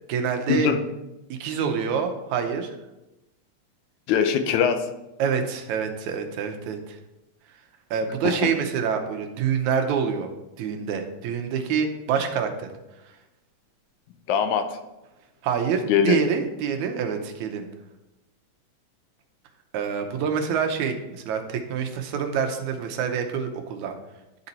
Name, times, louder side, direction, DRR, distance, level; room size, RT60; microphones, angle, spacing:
voice 1, 0.1-0.7 1.3-2.7 5.2-7.0 7.9-10.3 10.6-12.7 15.4-17.7 19.7-23.9, right 7 dB, 90° right, 6 dB, 2.2 m, -26 dB
voice 2, 4.1-4.9 8.2-8.5 14.3-14.7 15.9-16.2, left 8 dB, 90° left, 8 dB, 2.1 m, -21 dB
11.0 x 4.0 x 4.2 m, 0.96 s
omnidirectional pair, 3.3 m